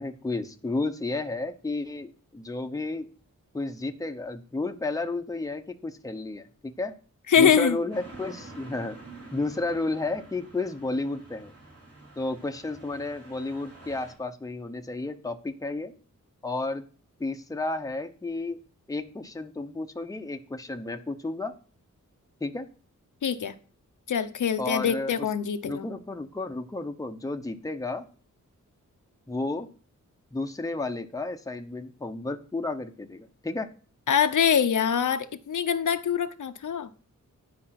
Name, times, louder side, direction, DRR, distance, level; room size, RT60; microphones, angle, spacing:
voice 1, 0.0-3.1 3.5-6.9 7.4-9.0 9.3-11.5 12.2-15.9 16.4-16.8 17.2-18.6 18.9-21.5 22.4-22.7 24.6-25.3 25.6-28.1 29.3-29.7 30.3-33.7, left 2 dB, 10° left, 0.8 m, -32 dB
voice 2, 7.3-7.8 23.2-23.5 24.1-25.9 34.1-36.9, left 8 dB, 70° left, 0.8 m, -24 dB
sound 1, 7.9-14.1, right 2 dB, 50° right, 3.6 m, -48 dB
10.0 x 5.2 x 5.8 m
wide cardioid pair, 120°, 32 cm